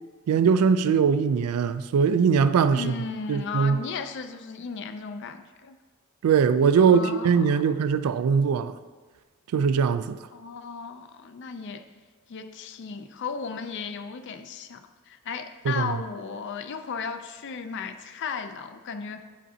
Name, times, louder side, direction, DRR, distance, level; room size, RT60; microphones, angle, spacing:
voice 1, 0.3-2.9 3.3-3.8 6.2-8.7 9.5-10.2 15.7-15.9, right 6 dB, 85° right, 0.3 m, -21 dB
voice 2, 2.7-5.8 6.8-7.8 10.3-11.8 12.3-19.2, left 5 dB, 55° left, 0.4 m, -35 dB
8.6 x 5.1 x 2.7 m
head